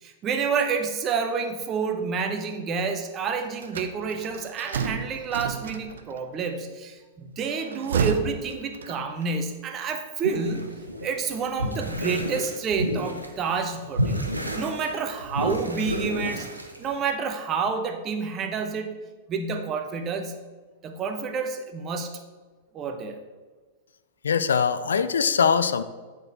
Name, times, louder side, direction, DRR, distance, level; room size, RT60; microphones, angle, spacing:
voice 1, 0.0-14.3 14.6-16.5 16.8-18.9 19.3-20.4 20.8-22.2 22.7-23.2, right 5 dB, 25° right, 6 dB, 0.9 m, -29 dB
sound 1, 3.6-6.2 7.5-9.3, right 6 dB, 65° right, 0.6 m, -31 dB
sound 2, 10.2-13.4 13.6-17.0, equal, 85° right, 1.0 m, -30 dB
voice 2, 24.2-25.8, left 6 dB, 65° left, 12 dB, 0.4 m, -22 dB
9.7 x 4.5 x 4.5 m, 1.4 s
figure-of-eight pair, 95°, 0 cm